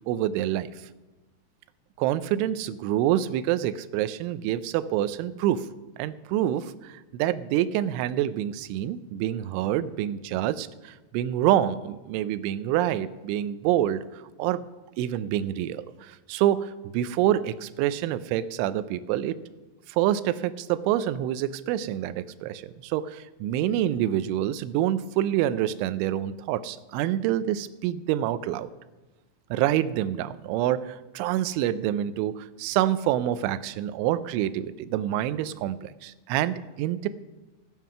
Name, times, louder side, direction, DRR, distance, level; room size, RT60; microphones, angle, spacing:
voice 1, 0.1-0.7 2.0-5.7 6.0-14.7 15.0-19.4 19.9-28.7 29.5-37.1, right 12 dB, 85° right, 14 dB, 2.9 m, -27 dB
16.5 x 9.2 x 5.5 m, 1.1 s
omnidirectional pair, 5.7 m